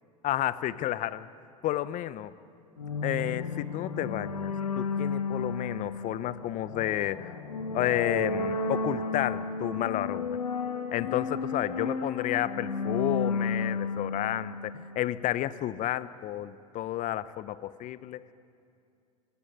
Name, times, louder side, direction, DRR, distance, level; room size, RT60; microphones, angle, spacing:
voice 1, 0.2-1.3 1.6-2.3 3.0-7.3 7.7-10.4 10.9-18.2, left 13 dB, 45° left, 16 dB, 0.9 m, -31 dB
sound 1, 2.8-15.3, left 4 dB, 85° left, 2.1 m, -33 dB
26.0 x 18.5 x 9.4 m, 2.5 s
hypercardioid pair, 80°, 19 cm